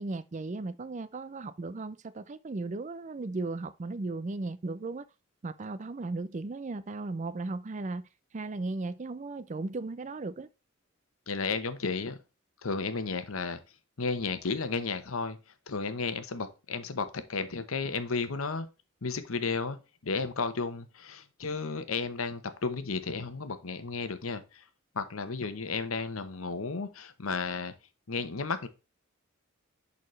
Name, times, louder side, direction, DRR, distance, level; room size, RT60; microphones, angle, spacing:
voice 1, 0.0-5.1 5.4-8.1 8.3-10.5, right 3 dB, 35° right, 0.4 m, -36 dB
voice 2, 11.3-12.2 12.6-13.6 14.0-15.4 15.7-18.7 19.0-24.6 24.9-27.7 28.1-28.7, left 4 dB, 90° left, 0.9 m, -33 dB
10.5 x 4.1 x 3.2 m
head